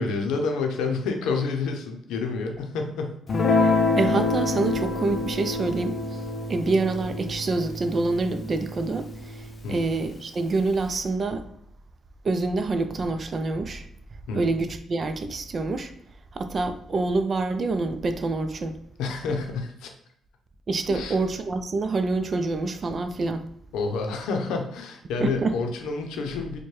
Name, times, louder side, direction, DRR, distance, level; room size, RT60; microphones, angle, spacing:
voice 1, 0.0-3.2 9.6-9.9 14.3-14.5 19.0-19.9 20.9-21.2 23.7-26.6, left 4 dB, 90° left, 0.6 m, -29 dB
Guitar, 3.3-9.9, left 3 dB, 45° left, 0.5 m, -27 dB
voice 2, 3.6-6.2 6.5-11.4 12.2-13.9 14.3-15.9 16.3-18.8 20.7-23.4 25.2-25.6, right 3 dB, 40° right, 0.4 m, -26 dB
4.4 x 2.2 x 3.1 m
cardioid pair, 90°, 0 cm